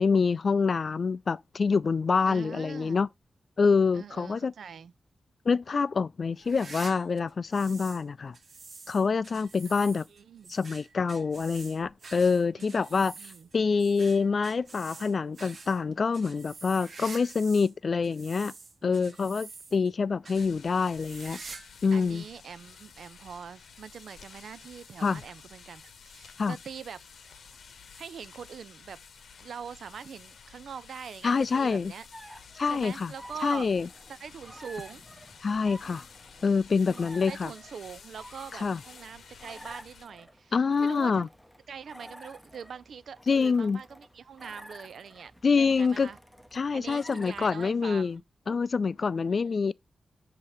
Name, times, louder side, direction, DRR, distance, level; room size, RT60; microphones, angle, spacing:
voice 1, 0.0-3.1 3.6-4.5 5.5-8.4 8.9-10.0 10.5-13.1 13.5-18.5 18.8-21.4 21.8-22.2 25.0-25.2 26.4-26.6 31.2-31.9 32.6-33.1 33.4-33.9 35.4-36.0 36.4-37.5 38.5-38.8 40.5-41.3 43.3-43.8 45.4-46.1 46.5-48.2 48.5-49.7, left 5 dB, 60° left, 0.3 m, -26 dB
voice 2, 2.3-3.0 3.9-4.9 10.1-10.6 12.6-13.5 18.8-19.4 21.9-27.0 27.9-29.0 29.4-32.0 32.7-33.7 34.1-35.0 36.8-41.3 41.7-45.3 45.6-46.2 46.7-48.2 49.3-49.7, right 7 dB, 85° right, 0.4 m, -43 dB
sound 1, 6.4-8.0 8.3-17.7 18.0-19.9 20.2-20.5 20.9-21.8 22.0-22.1 22.9-23.0 24.2-24.3, right 4 dB, 65° right, 1.0 m, -47 dB
sound 2, 20.3-40.1, left 6 dB, 85° left, 0.8 m, -52 dB
sound 3, 32.1-48.2, equal, ahead, 0.8 m, -51 dB
7.1 x 2.8 x 4.7 m
cardioid pair, 70°, 0 cm